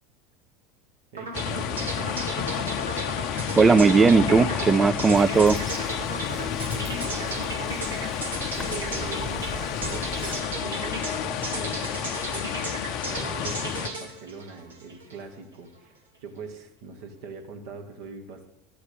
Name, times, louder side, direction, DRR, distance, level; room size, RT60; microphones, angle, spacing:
voice 1, 1.1-2.3 6.3-18.5, right 4 dB, 60° right, 1.4 m, -42 dB
sound 1, 1.2-15.3, right 3 dB, 85° right, 1.4 m, -35 dB
sound 2, 1.3-13.9, left 9 dB, 50° left, 0.6 m, -31 dB
voice 2, 3.3-5.7, right 4 dB, 20° right, 0.4 m, -18 dB
Bird vocalization bird call bird song, 5.1-10.4, left 1 dB, 5° left, 1.1 m, -42 dB
12.0 x 8.6 x 5.0 m
hypercardioid pair, 80°, 0 cm